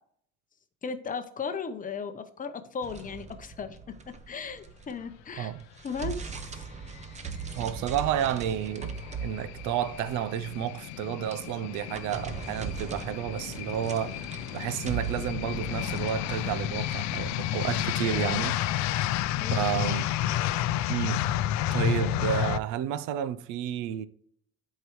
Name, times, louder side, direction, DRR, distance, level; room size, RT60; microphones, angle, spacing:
voice 1, 0.8-3.8 4.3-5.5 5.8-6.6 19.4-20.0, left 5 dB, 30° left, 0.7 m, -36 dB
sound 1, 2.8-5.2 5.5-18.5, right 5 dB, 25° right, 0.7 m, -40 dB
sound 2, 6.8-22.6, left 12 dB, 70° left, 0.5 m, -31 dB
voice 2, 7.5-14.2 14.5-18.6 19.5-20.1 20.9-21.3 21.7-24.1, right 10 dB, 90° right, 0.6 m, -31 dB
11.5 x 4.7 x 3.1 m
cardioid pair, 140°, 29 cm